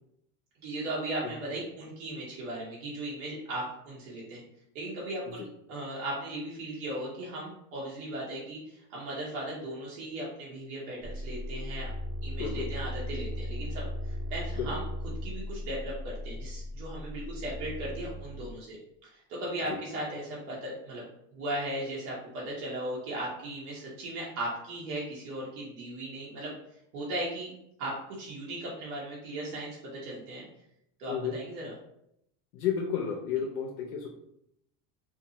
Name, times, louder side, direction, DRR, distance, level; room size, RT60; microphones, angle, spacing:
voice 1, 0.6-4.4 4.7-11.9 12.2-14.8 15.2-18.8 19.0-21.0 21.3-26.5 26.9-27.5 27.8-30.4 31.0-31.7, right 1 dB, 75° right, -5 dB, 1.0 m, -37 dB
sound 1, 11.0-18.5, equal, 5° left, 0.4 m, -37 dB
voice 2, 32.5-34.1, left 8 dB, 75° left, -1 dB, 0.6 m, -31 dB
2.6 x 2.3 x 2.7 m, 0.77 s
supercardioid pair, 100°, 45 cm